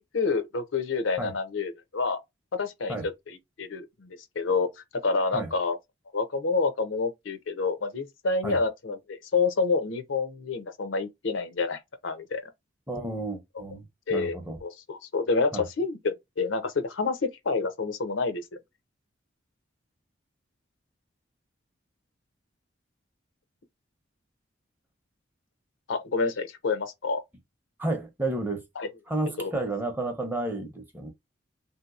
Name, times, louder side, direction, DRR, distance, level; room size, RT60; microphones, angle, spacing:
voice 1, 0.1-2.2 2.5-4.7 5.0-5.8 6.1-12.4 14.1-14.4 14.6-18.4 25.9-27.2 28.8-28.9 29.4-29.5, left 4 dB, 80° left, 0.6 m, -28 dB
voice 2, 12.9-14.6 15.5-15.6 27.8-28.6 29.1-31.1, right 2 dB, 10° right, 0.6 m, -31 dB
3.5 x 2.7 x 2.4 m
head